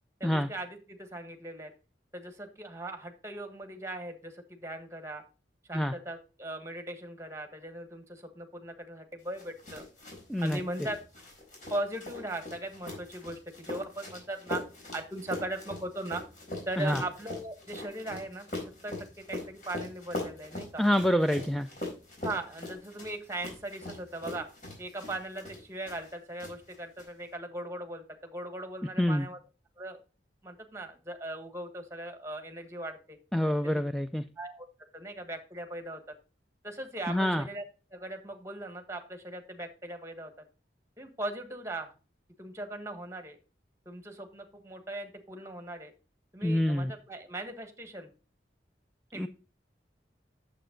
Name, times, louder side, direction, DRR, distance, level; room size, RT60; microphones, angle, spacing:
voice 1, 0.2-1.7 2.1-5.2 5.7-9.8 10.4-11.0 11.7-14.6 14.9-16.2 16.6-18.5 18.8-20.8 22.2-24.5 24.8-29.4 29.8-30.0 30.4-33.2 33.6-33.8 34.4-34.7 34.9-36.0 36.6-37.6 37.9-40.3 41.0-41.9 42.4-43.4 43.8-45.9 46.3-48.1 49.1-49.3, right 1 dB, 15° right, 6 dB, 1.5 m, -39 dB
sound 1, 9.4-26.1 26.4-27.0, left 2 dB, 45° left, 4.5 m, -42 dB
voice 2, 10.3-10.6 16.8-17.0 20.8-21.7 29.0-29.3 33.3-34.2 37.1-37.4 46.4-46.9 49.2-49.3, equal, ahead, 8 dB, 0.3 m, -26 dB
9.1 x 7.4 x 3.8 m, 0.33 s
head